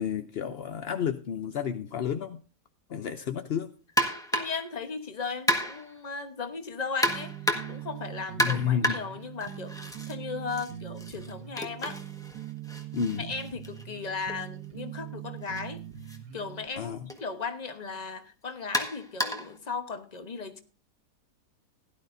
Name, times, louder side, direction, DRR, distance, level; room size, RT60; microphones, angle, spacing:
voice 1, 0.0-2.4 2.9-3.7 8.4-9.0 12.9-13.3 16.8-17.1, left 8 dB, 65° left, 8 dB, 0.6 m, -31 dB
sound 1, 4.0-4.7 5.5-6.0 7.0-7.9 8.4-10.1 10.5-14.3 15.4-15.6 16.1-16.2 17.1-17.2 18.7-19.6, equal, ahead, 1.3 m, -31 dB
voice 2, 4.3-12.0 13.2-15.8 16.1-20.6, left 4 dB, 30° left, 7 dB, 1.0 m, -37 dB
sound 2, 7.1-16.7, right 11 dB, 75° right, 1.5 m, -42 dB
16.5 x 11.5 x 2.6 m, 0.36 s
omnidirectional pair, 1.8 m